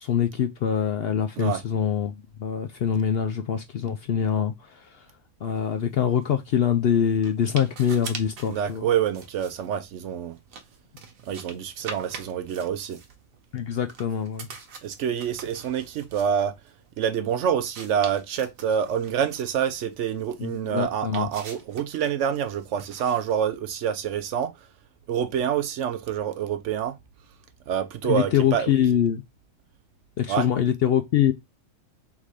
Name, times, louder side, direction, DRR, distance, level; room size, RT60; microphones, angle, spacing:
voice 1, 0.0-5.0 5.4-8.8 13.5-14.5 20.4-21.3 28.0-29.2 30.2-31.3, left 9 dB, 65° left, 0.6 m, -24 dB
sound 1, 5.5-23.6, right 5 dB, 85° right, 1.2 m, -45 dB
voice 2, 8.5-10.4 11.3-13.0 14.8-16.5 17.0-24.5 25.1-27.0 27.7-28.7 30.3-30.5, right 8 dB, 70° right, 0.8 m, -27 dB
3.6 x 2.7 x 4.7 m
omnidirectional pair, 1.4 m